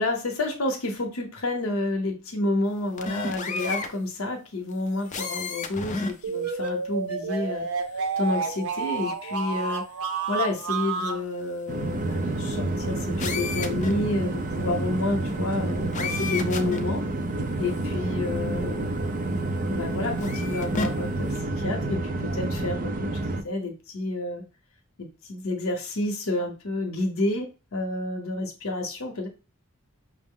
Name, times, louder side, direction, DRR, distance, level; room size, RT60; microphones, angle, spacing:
voice 1, 0.0-7.7 8.2-9.8 10.3-17.0 17.6-19.0 19.7-24.4 25.0-29.3, left 2 dB, 70° left, 3 dB, 0.7 m, -29 dB
sound 1, 3.0-3.9 5.1-6.1 6.6-6.7 13.2-13.9 15.9-16.8 17.7-17.8 20.2-20.9, left 3 dB, 35° left, 0.5 m, -31 dB
sound 2, 6.2-11.2, right 4 dB, 85° right, 0.6 m, -30 dB
sound 3, 11.7-23.4, right 2 dB, 40° right, 0.5 m, -29 dB
5.8 x 2.0 x 3.6 m, 0.32 s
head